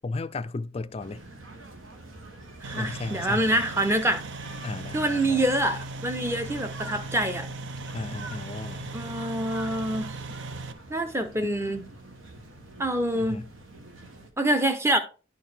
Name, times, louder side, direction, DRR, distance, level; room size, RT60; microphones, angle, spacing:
voice 1, 0.0-1.2 2.8-3.6 4.6-5.4 7.9-8.9 13.1-13.5, left 3 dB, 30° left, 0.4 m, -35 dB
sound 1, 1.0-14.3, right 2 dB, 80° right, 1.3 m, -46 dB
voice 2, 2.6-4.2 4.9-7.5 8.9-10.1 10.9-11.8 12.8-13.5 14.4-15.0, right 1 dB, 15° right, 0.7 m, -26 dB
sound 2, 2.6-10.7, right 3 dB, 60° right, 0.5 m, -38 dB
11.5 x 4.6 x 3.4 m
head